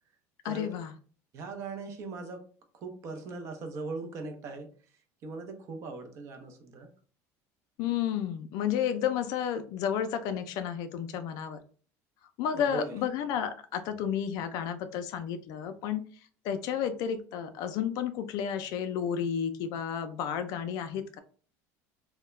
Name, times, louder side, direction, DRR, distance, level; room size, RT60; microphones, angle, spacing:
voice 1, 0.4-0.9 7.8-11.6 12.4-16.0 16.4-21.2, left 8 dB, 60° left, 9 dB, 0.3 m, -31 dB
voice 2, 1.3-2.4 2.7-4.7 5.2-6.9 12.5-13.0, right 3 dB, 40° right, 6 dB, 0.5 m, -39 dB
2.2 x 2.0 x 3.0 m, 0.41 s
cardioid pair, 150°, 7 cm